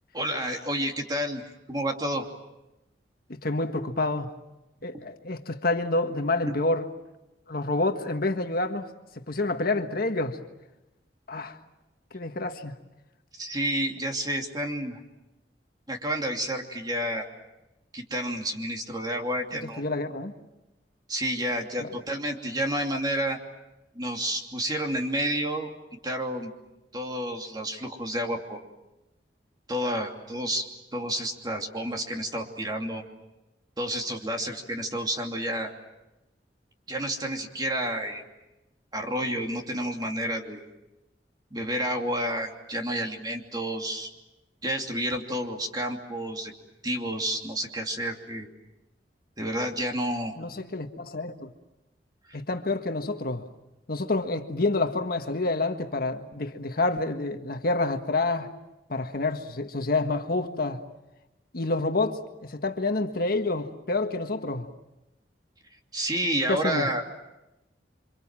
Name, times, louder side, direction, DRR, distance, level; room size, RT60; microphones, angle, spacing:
voice 1, 0.1-1.4 1.7-2.3 13.4-15.0 15.9-17.3 17.9-19.8 21.1-23.4 23.9-25.7 26.0-26.5 26.9-28.6 29.7-30.7 30.9-33.0 33.8-35.7 36.9-38.2 38.9-40.7 41.5-44.1 44.6-46.5 46.8-48.5 49.4-50.3 52.3-52.4 65.9-67.0, right 1 dB, 25° right, 2.8 m, -30 dB
voice 2, 3.3-4.3 4.8-6.9 7.5-8.9 9.3-10.4 11.3-11.6 12.1-12.7 19.6-20.3 21.8-21.9 50.4-51.5 52.3-53.5 53.9-58.5 58.9-60.8 61.5-64.7 66.5-66.9, left 2 dB, 55° left, 1.6 m, -28 dB
28.5 x 26.0 x 7.5 m
head